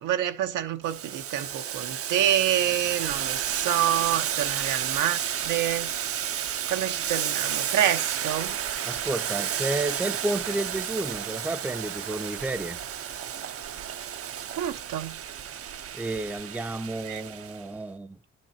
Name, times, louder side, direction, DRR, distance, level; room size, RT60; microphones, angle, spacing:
voice 1, 0.0-5.9 6.7-8.5 14.6-15.2 17.0-17.2, right 11 dB, 90° right, 1.0 m, -27 dB
Boiling, 0.8-17.6, right 9 dB, 50° right, 0.6 m, -32 dB
voice 2, 8.8-12.8 15.9-18.2, right 2 dB, 5° right, 0.6 m, -31 dB
11.5 x 6.3 x 2.7 m
cardioid pair, 90°, 30 cm